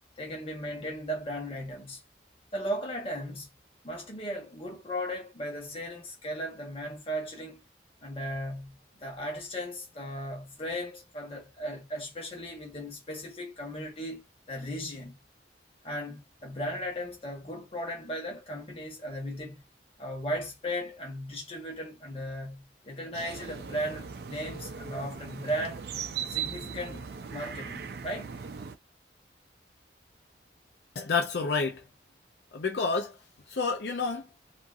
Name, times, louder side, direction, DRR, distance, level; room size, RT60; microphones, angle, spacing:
voice 1, 0.2-2.0 2.5-3.5 3.8-7.6 8.0-15.2 15.8-19.6 20.0-25.8 26.3-28.3, equal, 30° left, 0.9 m, -36 dB
sound 1, 23.1-28.8, right 7 dB, 60° right, 0.4 m, -38 dB
voice 2, 31.0-31.8 32.5-33.1 33.5-34.2, left 4 dB, 70° left, 0.5 m, -29 dB
2.6 x 2.5 x 2.4 m
head